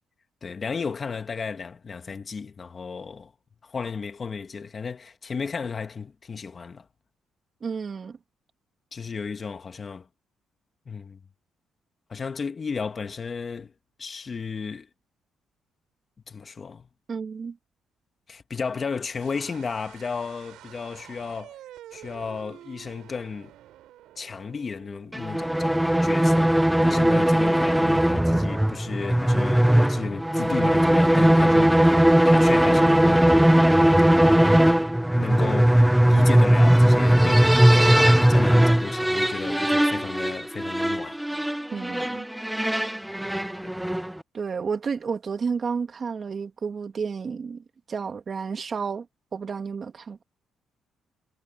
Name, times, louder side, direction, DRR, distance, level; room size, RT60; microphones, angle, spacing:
voice 1, 0.4-3.3 3.6-6.9 8.9-10.1 10.9-11.2 12.1-13.7 14.0-14.9 16.3-16.9 18.3-21.6 21.9-23.5 24.2-32.0 32.2-33.3 34.1-34.8 35.1-41.2 43.6-43.7, left 5 dB, 40° left, 2.2 m, -34 dB
voice 2, 7.6-8.2 17.1-17.6 41.7-42.3 44.3-47.6 47.9-49.1 49.3-50.2, right 5 dB, 45° right, 2.6 m, -31 dB
sound 1, 19.1-25.9, right 13 dB, 85° right, 6.5 m, -49 dB
sound 2, 25.1-44.2, right 1 dB, 5° right, 0.9 m, -19 dB
cardioid pair, 90°, 0 cm